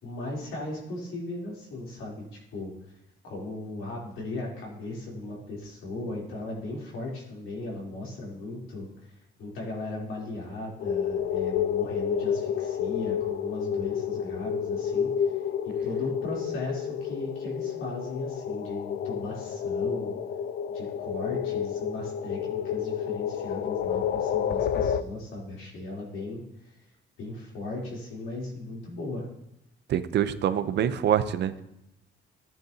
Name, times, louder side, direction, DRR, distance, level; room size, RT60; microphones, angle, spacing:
voice 1, 0.0-2.7 3.2-8.9 9.4-15.1 15.6-20.1 20.7-26.4 27.2-29.3, left 2 dB, 80° left, -3 dB, 3.3 m, -37 dB
sound 1, 10.8-25.0, left 8 dB, 55° left, 0.4 m, -30 dB
voice 2, 29.9-31.6, right 10 dB, 60° right, 12 dB, 0.6 m, -25 dB
14.5 x 8.9 x 2.8 m, 0.83 s
cardioid pair, 140°, 20 cm